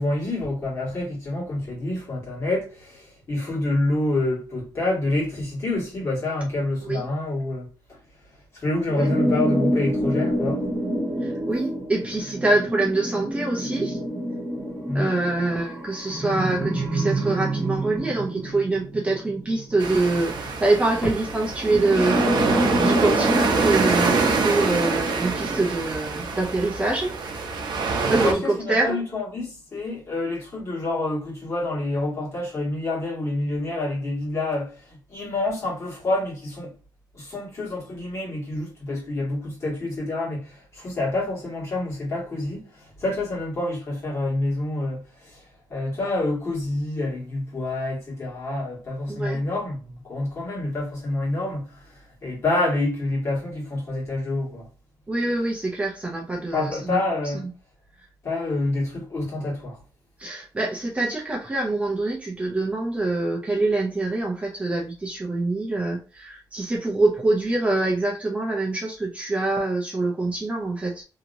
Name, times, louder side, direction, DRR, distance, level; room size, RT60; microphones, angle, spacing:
voice 1, 0.0-8.0 8.5-10.7 14.9-15.1 28.0-36.7 37.1-54.7 56.5-57.5 58.2-59.8, left 2 dB, 40° left, 1.7 m, -27 dB
sound 1, 8.9-20.8 21.6-25.6, right 1 dB, 35° right, 1.3 m, -27 dB
voice 2, 11.2-14.0 14.9-27.1 28.1-29.0 49.1-49.4 55.1-57.0 57.4-57.5 60.2-71.0, right 2 dB, 15° right, 0.5 m, -25 dB
sound 2, 19.8-28.3, right 4 dB, 75° right, 0.6 m, -25 dB
2.8 x 2.8 x 2.6 m
wide cardioid pair, 170°, 8 cm